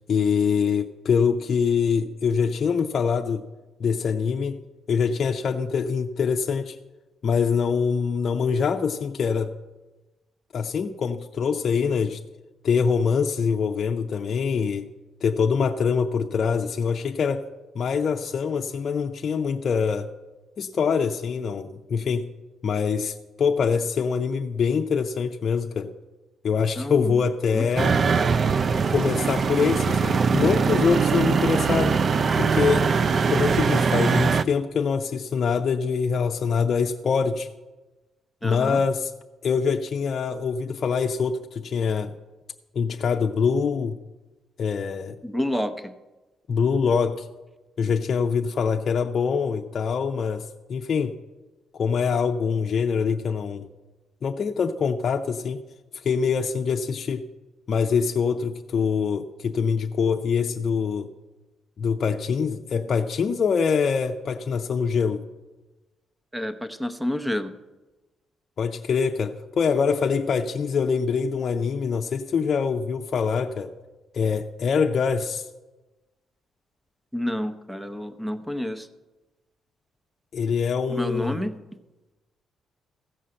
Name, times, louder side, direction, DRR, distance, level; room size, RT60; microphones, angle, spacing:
voice 1, 0.1-3.4 3.8-4.6 4.9-6.8 7.2-9.5 10.5-12.2 12.6-14.9 15.2-17.4 17.7-20.1 20.6-22.2 22.6-25.9 26.4-27.9 28.9-32.0 32.4-32.9 33.3-37.5 38.4-39.1 39.4-42.1 42.7-44.0 44.6-45.2 46.5-47.3 47.8-50.4 50.7-51.1 51.7-53.6 54.2-55.6 55.9-57.2 57.7-61.1 61.8-65.2 68.6-73.7 74.1-75.5 80.3-81.4, left 6 dB, 50° left, 3 dB, 0.6 m, -24 dB
voice 2, 26.8-27.2 27.5-28.3 38.4-38.8 45.2-45.9 66.3-67.5 77.1-78.9 80.9-81.5, left 1 dB, 5° right, 9 dB, 0.9 m, -29 dB
sound 1, 27.8-34.4, right 5 dB, 45° right, 0.4 m, -22 dB
15.0 x 5.6 x 7.6 m, 1.1 s
cardioid pair, 90°, 0 cm